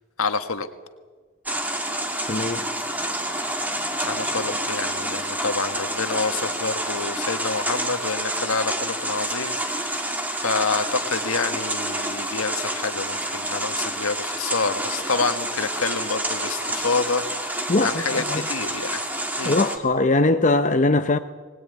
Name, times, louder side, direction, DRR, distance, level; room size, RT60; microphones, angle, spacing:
voice 1, 0.2-0.7 4.0-10.1 10.4-19.0 19.4-19.6, left 4 dB, 80° left, 1.6 m, -28 dB
sound 1, 1.5-19.8, right 1 dB, 10° right, 2.3 m, -28 dB
voice 2, 2.3-2.6 17.7-18.4 19.4-21.2, left 2 dB, 35° left, 0.7 m, -21 dB
21.5 x 19.5 x 9.6 m
head